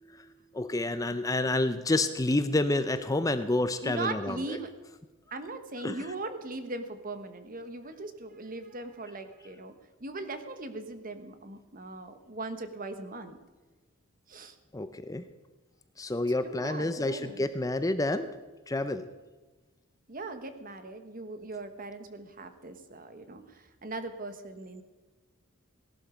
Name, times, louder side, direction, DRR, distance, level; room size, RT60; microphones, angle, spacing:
voice 1, 0.0-4.6 5.8-5.9 14.7-15.2 16.0-18.3 18.7-19.0, left 2 dB, 15° left, 10 dB, 0.5 m, -29 dB
voice 2, 3.8-4.7 5.3-9.7 10.0-13.4 14.3-14.5 16.4-17.4 20.1-24.8, right 2 dB, 40° right, 9 dB, 1.3 m, -39 dB
17.5 x 11.5 x 5.1 m, 1.2 s
head